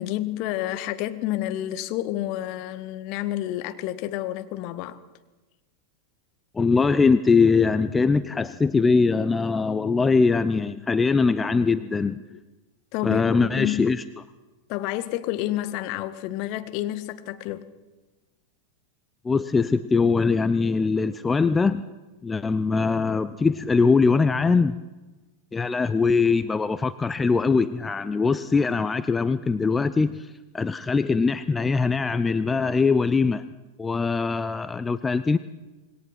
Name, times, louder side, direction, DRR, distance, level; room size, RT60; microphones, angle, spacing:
voice 1, 0.0-5.0 12.3-12.4 12.9-13.9 14.7-17.7, left 14 dB, 45° left, 1.8 m, -29 dB
voice 2, 6.5-12.2 13.0-14.0 19.2-21.8 22.2-24.8 25.5-33.4 33.8-35.4, left 4 dB, 15° left, 0.7 m, -22 dB
27.0 x 22.0 x 6.0 m
figure-of-eight pair, 90°, 0 cm